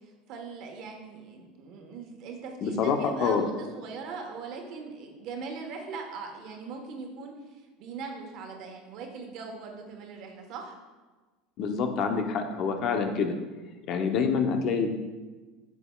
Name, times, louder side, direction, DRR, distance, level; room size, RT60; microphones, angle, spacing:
voice 1, 0.0-10.8, right 4 dB, 60° right, 3 dB, 1.3 m, -40 dB
voice 2, 2.6-3.4 11.6-13.3 13.9-14.9, left 5 dB, 55° left, 5 dB, 0.8 m, -26 dB
8.3 x 7.1 x 2.4 m, 1.3 s
supercardioid pair, 105°, 0 cm